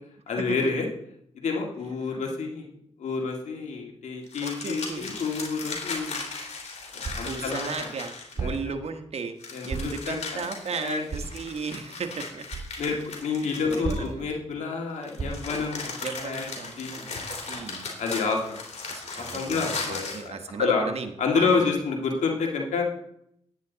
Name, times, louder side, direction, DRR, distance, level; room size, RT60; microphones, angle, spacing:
voice 1, 0.3-0.9 1.4-2.7 3.0-6.2 6.9-7.9 8.4-8.8 9.5-11.0 12.8-16.5 16.8-17.0 18.0-18.6 19.1-20.8 21.2-22.8, left 4 dB, 80° left, 1 dB, 1.9 m, -29 dB
sound 1, 4.3-8.6 9.4-14.3 15.0-20.3, left 4 dB, 65° left, 3.3 m, -37 dB
voice 2, 4.4-5.1 7.2-8.1 8.4-9.4 9.6-12.4 13.4-14.2 16.0-17.9 18.9-21.1 21.3-21.6, right 5 dB, 60° right, 7 dB, 1.3 m, -35 dB
sound 2, 7.0-7.4 8.4-8.8 9.7-10.1 11.1-11.4 12.5-12.7 13.8-14.3 15.2-15.6, right 4 dB, 40° right, 3.0 m, -33 dB
10.5 x 9.4 x 4.0 m, 0.73 s
cardioid pair, 65°, 12 cm